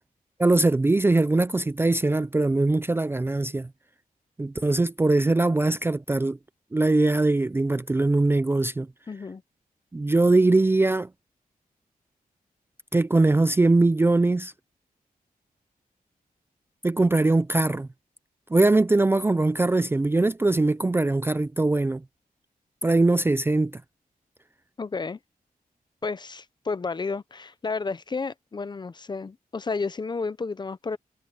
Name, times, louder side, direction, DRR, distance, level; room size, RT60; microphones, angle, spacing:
voice 1, 0.4-3.7 4.4-6.4 6.7-8.9 9.9-11.1 12.9-14.5 16.8-17.9 18.5-22.0 22.8-23.8, right 2 dB, 15° right, 0.4 m, -21 dB
voice 2, 9.1-9.4 24.8-25.2 26.0-31.0, left 4 dB, 30° left, 0.6 m, -31 dB
wide cardioid pair, 160°, 15 cm